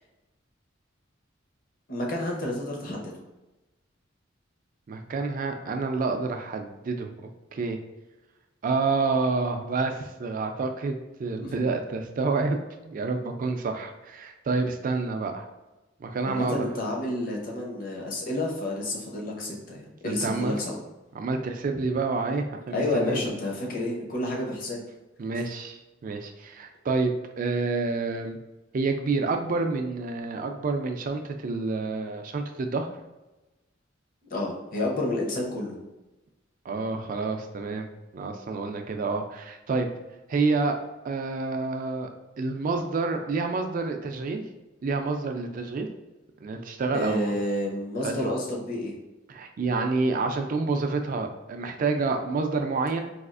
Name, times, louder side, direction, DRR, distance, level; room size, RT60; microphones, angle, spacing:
voice 1, 1.9-3.1 11.4-11.5 16.2-20.8 22.7-24.8 34.3-35.8 46.9-48.9, left 1 dB, 45° left, -1 dB, 0.7 m, -30 dB
voice 2, 4.9-7.1 7.5-7.8 8.6-15.5 16.0-16.7 20.0-20.6 21.1-23.2 25.2-28.4 28.7-32.9 36.7-39.9 40.3-40.8 41.0-42.1 42.4-44.5 44.8-45.9 46.4-47.3 48.0-48.3 49.3-53.0, right 3 dB, 45° right, 5 dB, 0.3 m, -28 dB
4.2 x 2.4 x 2.4 m, 1.0 s
head